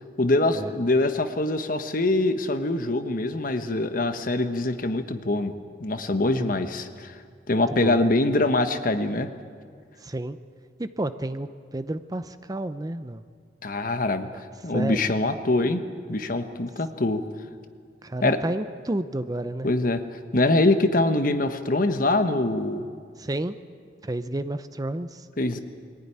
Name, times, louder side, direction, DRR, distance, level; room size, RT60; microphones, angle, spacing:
voice 1, 0.2-5.5 5.8-7.2 7.5-9.3 13.6-14.3 14.6-15.8 16.1-17.2 18.2-18.4 19.6-20.0 20.3-22.8 25.4-25.6, left 2 dB, 50° left, 8 dB, 1.2 m, -24 dB
voice 2, 7.5-8.0 10.0-10.4 10.8-13.2 14.3-14.4 14.7-15.0 18.0-19.7 23.2-23.6 24.0-25.3, right 1 dB, 20° right, 11 dB, 0.6 m, -31 dB
22.5 x 14.5 x 9.8 m, 2.1 s
head